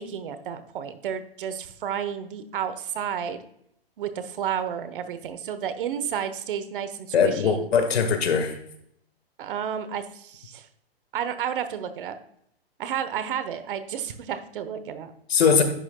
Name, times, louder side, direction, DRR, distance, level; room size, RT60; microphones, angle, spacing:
voice 1, 0.0-3.4 4.0-7.7 9.4-10.7 11.1-12.2 12.8-15.1, right 8 dB, 55° right, 11 dB, 1.1 m, -31 dB
voice 2, 7.1-8.5 15.3-15.6, left 6 dB, 85° left, 7 dB, 1.7 m, -20 dB
10.5 x 6.2 x 2.3 m, 0.70 s
hypercardioid pair, 150°, 31 cm